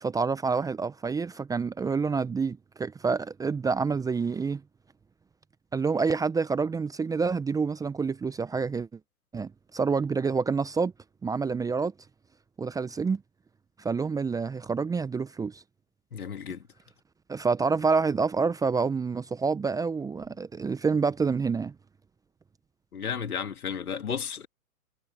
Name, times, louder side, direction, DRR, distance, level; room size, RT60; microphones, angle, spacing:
voice 1, 0.0-4.6 5.7-8.9 9.3-10.9 11.2-11.9 12.6-13.2 13.8-15.6 17.3-21.7, right 5 dB, 10° right, 1.1 m, -27 dB
voice 2, 16.1-16.6 22.9-24.5, left 7 dB, 70° left, 3.2 m, -33 dB
figure-of-eight pair, 120°, 45 cm